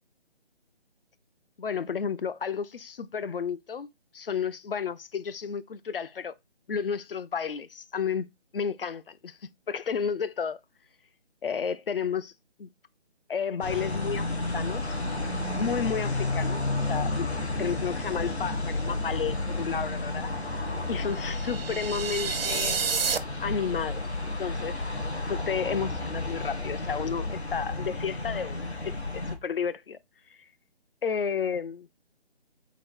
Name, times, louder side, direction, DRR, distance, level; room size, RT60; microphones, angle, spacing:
voice 1, 1.6-3.9 4.1-6.3 6.7-8.3 8.5-9.4 9.7-10.6 11.4-12.3 12.6-12.7 13.3-14.3 14.5-14.9 15.6-17.3 17.6-20.3 20.9-22.8 23.4-24.0 24.4-24.8 25.3-30.0 31.0-31.9, left 6 dB, 60° left, 0.4 m, -32 dB
sound 1, 13.6-29.4, left 2 dB, 85° left, 1.3 m, -32 dB
sound 2, 21.2-23.2, right 6 dB, 65° right, 0.5 m, -29 dB
3.8 x 2.6 x 3.6 m
figure-of-eight pair, 150°, 32 cm